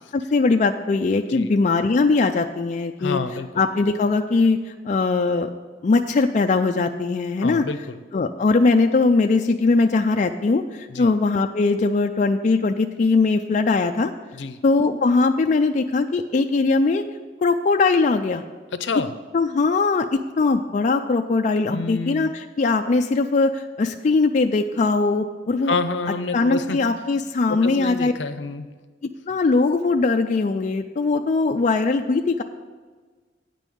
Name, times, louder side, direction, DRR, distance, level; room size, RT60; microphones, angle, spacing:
voice 1, 0.1-3.2 3.6-5.5 5.8-7.6 8.1-14.1 14.6-17.1 17.4-18.4 19.3-25.7 26.3-28.1 29.3-32.4, left 3 dB, 40° left, 5 dB, 0.4 m, -20 dB
voice 2, 3.0-3.6 7.4-8.0 10.9-11.1 14.3-14.6 18.7-19.1 21.7-22.3 25.6-26.8 27.5-28.7, left 3 dB, 75° left, 10 dB, 0.7 m, -28 dB
9.1 x 5.4 x 7.8 m, 1.4 s
head